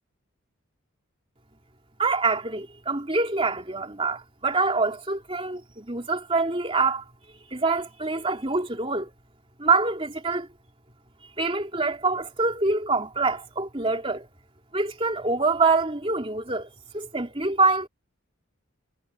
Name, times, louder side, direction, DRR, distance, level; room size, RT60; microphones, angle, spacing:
voice 1, 2.0-7.0 7.5-9.1 9.6-10.5 11.4-14.3 14.7-17.9, right 3 dB, 25° right, 3.3 m, -25 dB
head